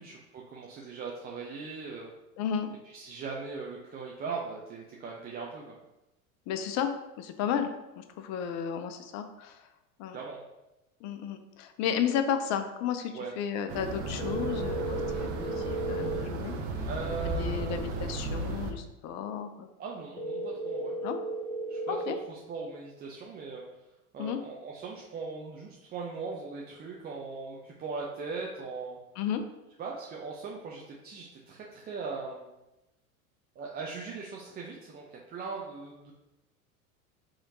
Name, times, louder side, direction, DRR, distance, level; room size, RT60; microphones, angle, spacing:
voice 1, 0.0-2.1 2.9-5.7 10.1-10.4 13.1-13.3 16.9-17.8 19.8-21.0 21.7-21.9 22.3-23.6 24.1-29.0 29.8-32.5 33.6-36.1, right 4 dB, 25° right, -2 dB, 0.5 m, -39 dB
voice 2, 2.4-2.7 6.5-6.9 7.2-7.7 8.0-9.7 10.0-10.2 11.0-16.5 16.8-16.9 17.2-19.7 21.0-21.2 21.9-22.2 24.2-24.4 29.2-29.4, left 8 dB, 40° left, 8 dB, 0.5 m, -33 dB
sound 1, 13.7-18.7, right 2 dB, 55° right, 0.7 m, -34 dB
sound 2, 14.2-16.2 20.2-22.2, right 1 dB, 10° left, 0.8 m, -34 dB
4.8 x 2.9 x 2.7 m, 0.96 s
hypercardioid pair, 80°, 42 cm